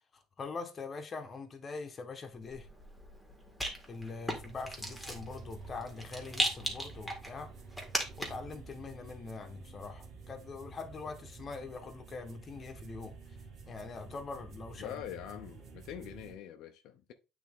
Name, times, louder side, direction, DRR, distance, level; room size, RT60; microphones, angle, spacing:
voice 1, 0.1-2.7 3.9-7.5 8.2-13.4 13.7-15.0, left 4 dB, 25° left, 1.1 m, -43 dB
Rattle, 2.4-8.5, equal, ahead, 1.7 m, -38 dB
sound 1, 4.3-16.3, right 4 dB, 45° right, 1.9 m, -50 dB
voice 2, 14.8-17.1, left 10 dB, 65° left, 0.7 m, -44 dB
8.6 x 3.5 x 3.6 m
cardioid pair, 140°, 0 cm